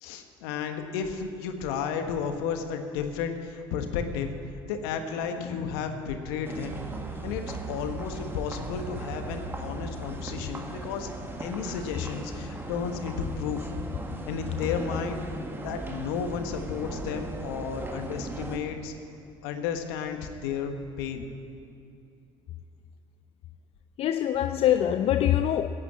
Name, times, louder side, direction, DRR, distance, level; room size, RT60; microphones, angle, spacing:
voice 1, 0.0-4.3 4.7-6.8 7.2-7.4 7.7-11.1 11.4-13.7 14.3-15.2 15.6-18.9 19.4-21.3, left 6 dB, 80° left, 6 dB, 1.3 m, -33 dB
voice 2, 5.4-5.7 24.0-25.7, left 11 dB, 55° left, 10 dB, 0.5 m, -24 dB
sound 1, 6.4-18.6, right 2 dB, 20° right, 1.8 m, -37 dB
13.0 x 9.6 x 8.7 m, 2.5 s
hypercardioid pair, 70°, 12 cm